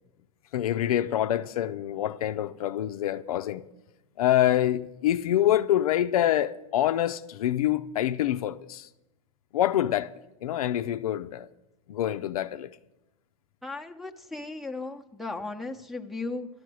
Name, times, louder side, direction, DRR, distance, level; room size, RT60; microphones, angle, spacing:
voice 1, 0.5-3.7 4.2-8.9 9.5-10.1 10.4-11.5 11.9-12.7, left 12 dB, 80° left, 0.6 m, -26 dB
voice 2, 13.6-16.5, left 3 dB, ahead, 0.8 m, -36 dB
13.0 x 10.5 x 6.2 m
hypercardioid pair, 125°, 18 cm